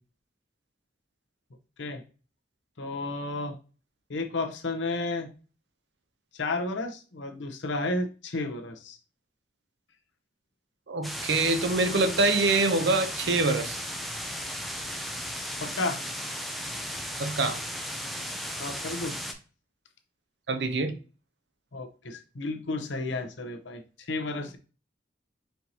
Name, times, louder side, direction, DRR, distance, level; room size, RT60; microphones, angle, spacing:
voice 1, 2.8-3.6 4.1-5.3 6.3-9.0 15.6-16.0 18.6-19.2 21.7-24.6, left 2 dB, 85° left, 0.8 m, -32 dB
voice 2, 10.9-13.8 17.2-17.6 20.5-21.0, right 3 dB, 70° right, 0.7 m, -25 dB
sound 1, 11.0-19.3, equal, ahead, 0.5 m, -35 dB
4.5 x 4.0 x 2.8 m
head